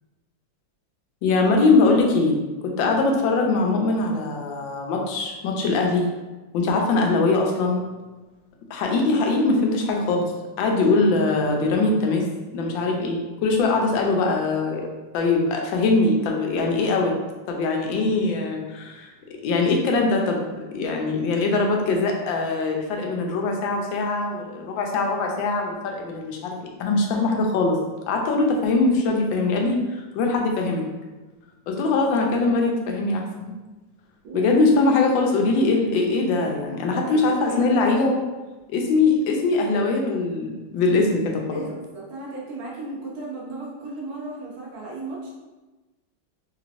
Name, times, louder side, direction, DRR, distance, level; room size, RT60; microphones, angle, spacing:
voice 1, 1.2-2.4 2.6-6.1 6.5-7.8 8.7-10.3 10.6-12.3 12.5-14.9 15.1-17.1 17.5-19.1 19.4-27.8 28.1-30.8 31.7-33.5 34.3-38.2 38.7-41.6, left 3 dB, 85° left, 1 dB, 1.3 m, -22 dB
voice 2, 34.2-34.6 36.8-37.8 41.5-45.3, right 2 dB, 65° right, -5 dB, 1.1 m, -35 dB
3.3 x 3.1 x 2.5 m, 1.2 s
omnidirectional pair, 2.0 m